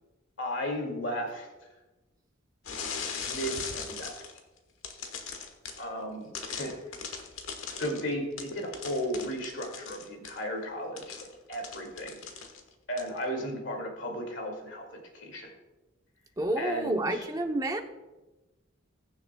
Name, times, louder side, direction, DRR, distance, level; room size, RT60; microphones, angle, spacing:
voice 1, 0.4-1.5 3.2-4.1 5.8-6.8 7.7-11.1 11.5-12.2 12.9-15.5 16.6-17.2, equal, 65° left, 2 dB, 2.3 m, -35 dB
sound 1, 2.7-4.4 4.8-5.9 6.3-10.4 11.0-12.7 13.0-13.2, left 5 dB, 90° left, 1.3 m, -39 dB
voice 2, 16.4-17.8, right 1 dB, 20° right, 5 dB, 0.7 m, -29 dB
21.0 x 7.1 x 2.3 m, 1.1 s
head